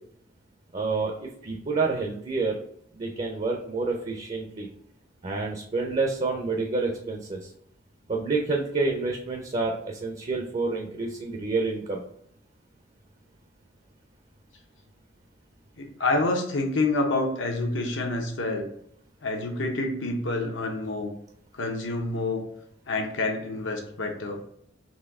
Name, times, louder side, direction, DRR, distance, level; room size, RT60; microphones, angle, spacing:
voice 1, 0.7-2.5 2.9-4.7 5.2-7.4 8.1-12.0, right 3 dB, 35° right, 1 dB, 0.5 m, -28 dB
voice 2, 15.8-18.7 19.2-21.1 21.5-22.5 22.9-24.4, left 2 dB, 80° left, 2 dB, 0.9 m, -28 dB
4.2 x 3.0 x 3.5 m, 0.68 s
head